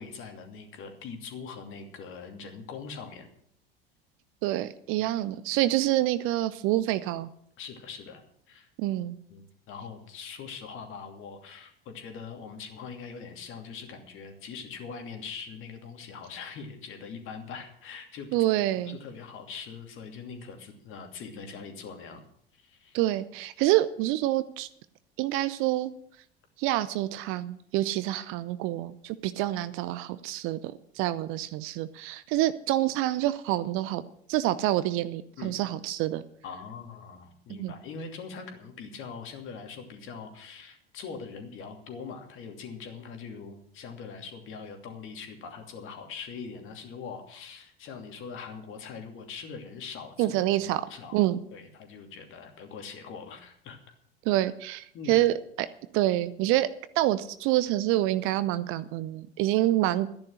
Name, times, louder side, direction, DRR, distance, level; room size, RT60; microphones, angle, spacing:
voice 1, 0.0-3.3 7.6-8.2 8.5-8.7 9.3-18.3 18.9-22.2 22.5-23.0 35.4-35.6 36.4-50.3 50.6-51.2 51.5-53.8 54.9-55.2, left 5 dB, 40° left, 4 dB, 2.7 m, -42 dB
voice 2, 4.4-7.3 8.8-9.2 18.3-19.0 22.9-24.7 25.2-25.9 26.6-34.0 34.3-36.2 37.5-37.7 50.2-50.9 51.1-51.4 54.3-55.7 55.9-56.7 57.0-60.1, right 15 dB, 45° right, 15 dB, 0.7 m, -27 dB
13.0 x 10.5 x 6.6 m, 0.66 s
figure-of-eight pair, 75°, 30 cm